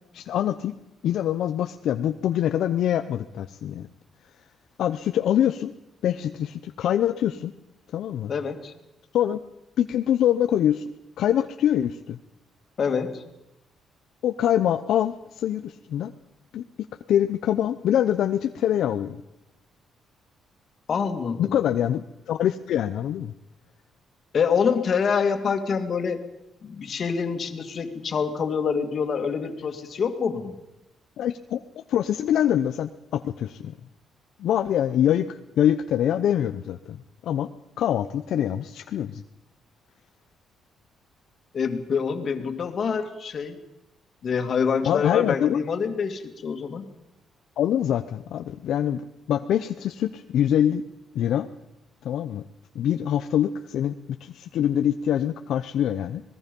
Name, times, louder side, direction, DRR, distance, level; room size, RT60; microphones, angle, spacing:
voice 1, 0.1-0.7 1.0-3.9 4.8-5.7 6.0-7.5 7.9-8.3 9.1-9.4 9.8-10.8 11.2-12.2 14.2-16.1 16.5-16.6 17.1-19.2 21.4-23.3 31.2-33.8 34.4-37.5 37.8-39.2 44.8-45.6 47.6-49.0 49.3-50.8 51.1-51.5 52.0-52.4 52.7-56.2, left 10 dB, 75° left, 8 dB, 0.7 m, -24 dB
voice 2, 8.3-8.7 12.8-13.2 20.9-21.5 24.3-26.2 26.6-30.5 41.5-43.6 44.2-46.9, left 6 dB, 50° left, 7 dB, 2.3 m, -26 dB
26.0 x 19.5 x 5.4 m, 0.95 s
cardioid pair, 90°, 0 cm